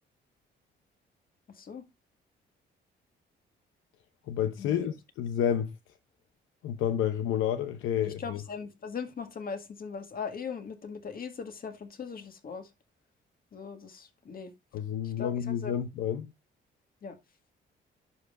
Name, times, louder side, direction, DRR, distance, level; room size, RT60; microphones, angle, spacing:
voice 1, 4.3-5.7 6.6-8.4 14.7-16.3, left 9 dB, 85° left, 0.8 m, -30 dB
voice 2, 8.0-12.7 13.5-14.5 15.0-15.8 17.0-17.2, left 6 dB, 45° left, 1.8 m, -40 dB
11.0 x 5.5 x 2.5 m
cardioid pair, 90°, 20 cm